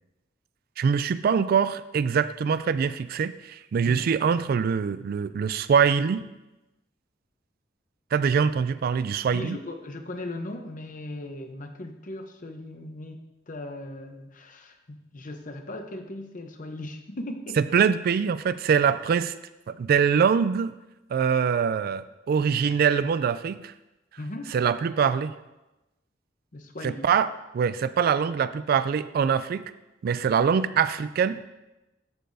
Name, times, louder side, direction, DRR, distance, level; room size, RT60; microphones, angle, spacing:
voice 1, 0.8-6.3 8.1-9.6 17.6-19.3 19.7-20.7 21.1-23.7 24.5-25.3 26.8-29.7 30.0-31.5, right 6 dB, 55° right, 14 dB, 0.3 m, -24 dB
voice 2, 9.3-17.6 24.2-24.5 26.5-27.1, left 1 dB, 45° left, 6 dB, 0.8 m, -38 dB
12.5 x 6.7 x 2.6 m, 1.0 s
head